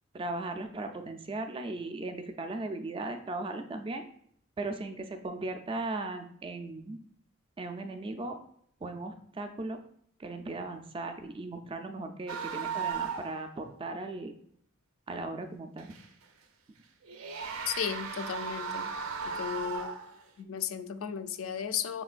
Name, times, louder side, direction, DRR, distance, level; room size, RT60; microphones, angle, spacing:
voice 1, 0.1-4.0 4.6-7.0 7.6-8.4 8.8-9.8 10.2-14.3 15.1-15.9, right 2 dB, 25° right, 6 dB, 0.3 m, -37 dB
sound 1, 12.3-13.4 13.7-13.8 15.8-16.2 17.0-20.4, right 6 dB, 85° right, 0.5 m, -36 dB
voice 2, 17.7-19.0 19.3-19.9 20.4-22.0, left 8 dB, 75° left, 11 dB, 0.3 m, -35 dB
5.9 x 3.0 x 2.4 m, 0.67 s
head